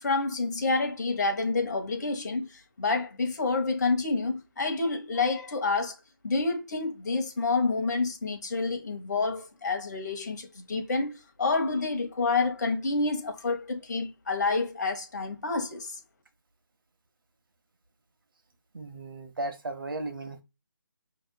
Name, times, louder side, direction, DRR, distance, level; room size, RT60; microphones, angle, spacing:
voice 1, 0.0-5.9 6.2-15.9, left 3 dB, 50° left, 1.2 m, -28 dB
voice 2, 18.7-20.4, right 2 dB, 65° right, 0.9 m, -35 dB
5.3 x 2.9 x 2.2 m
figure-of-eight pair, 165°, 12 cm